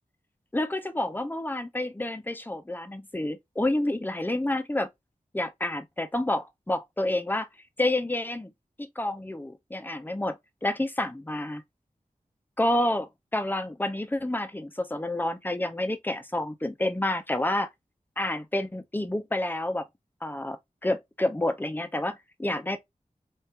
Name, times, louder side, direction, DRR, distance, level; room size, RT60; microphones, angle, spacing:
voice 1, 0.5-4.9 5.3-7.5 7.8-8.5 8.8-11.6 12.6-17.7 18.2-19.9 20.2-22.8, left 1 dB, 15° left, 0.7 m, -29 dB
3.6 x 3.1 x 2.9 m
wide cardioid pair, 45°, 14 cm